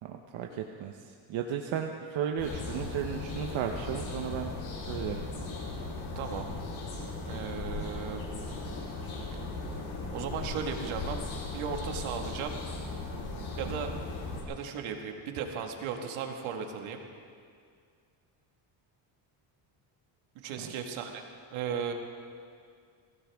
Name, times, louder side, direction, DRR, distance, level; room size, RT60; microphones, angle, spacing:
voice 1, 0.0-4.5 4.9-5.2 13.6-13.7 20.6-20.7, right 8 dB, 70° right, 3 dB, 1.0 m, -34 dB
sound 1, 2.4-14.4, left 3 dB, 70° left, 4.4 m, -37 dB
voice 2, 6.2-6.5 7.3-8.3 9.3-9.5 10.1-12.5 13.6-13.9 14.5-17.0 20.4-21.3 21.5-21.9, right 6 dB, 90° right, 3 dB, 1.8 m, -36 dB
22.5 x 16.0 x 3.6 m, 2.2 s
cardioid pair, 100°, 47 cm